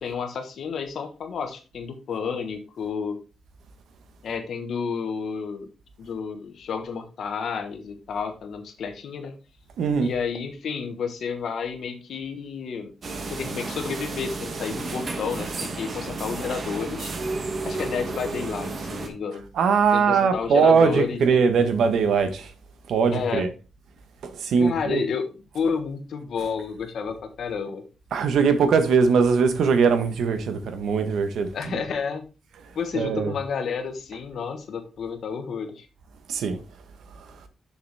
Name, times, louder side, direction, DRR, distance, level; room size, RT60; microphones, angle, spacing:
voice 1, 0.0-3.2 4.2-5.7 6.0-9.3 10.0-12.9 13.3-17.1 17.6-19.5 19.9-21.4 23.1-23.5 24.6-27.8 31.5-32.3 32.7-35.9, left 6 dB, 55° left, 1.3 m, -31 dB
voice 2, 9.8-10.1 19.6-22.5 22.9-23.5 24.2-25.0 28.1-31.5 32.9-33.3 36.3-36.6, right 5 dB, 70° right, 1.1 m, -21 dB
sound 1, 13.0-19.1, right 3 dB, 35° right, 1.2 m, -32 dB
6.6 x 6.6 x 3.4 m
wide cardioid pair, 175°, 0 cm